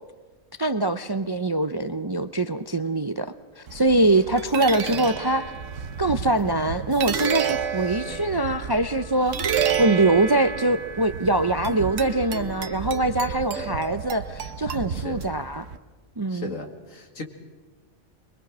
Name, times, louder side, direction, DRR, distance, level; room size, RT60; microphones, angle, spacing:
voice 1, 0.6-5.5 6.0-15.7 16.2-16.5, right 2 dB, 35° right, 11 dB, 0.4 m, -23 dB
sound 1, 3.7-15.8, right 7 dB, 70° right, 1.3 m, -30 dB
voice 2, 7.8-8.2 13.5-13.8 14.9-15.2 16.3-17.2, left 3 dB, 85° left, 5 dB, 2.6 m, -38 dB
23.5 x 22.0 x 6.1 m, 1.3 s
omnidirectional pair, 1.3 m